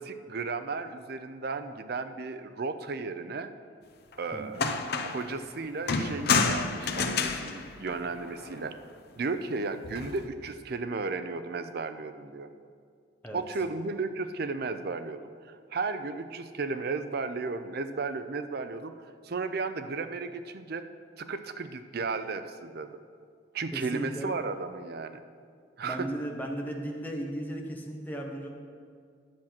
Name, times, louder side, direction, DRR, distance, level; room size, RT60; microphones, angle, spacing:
voice 1, 0.0-3.5 4.2-4.6 5.0-8.7 9.2-12.5 13.3-18.9 19.2-20.8 21.2-23.0 23.5-25.2 25.8-26.1, right 4 dB, 55° right, 10 dB, 0.5 m, -34 dB
sound 1, 4.1-4.2 4.6-5.3 5.9-8.6 9.8-10.3, left 4 dB, 55° left, 0.6 m, -29 dB
voice 2, 23.7-24.3 25.8-28.5, right 1 dB, 10° left, 1 dB, 1.0 m, -36 dB
10.5 x 7.4 x 5.8 m, 2.2 s
head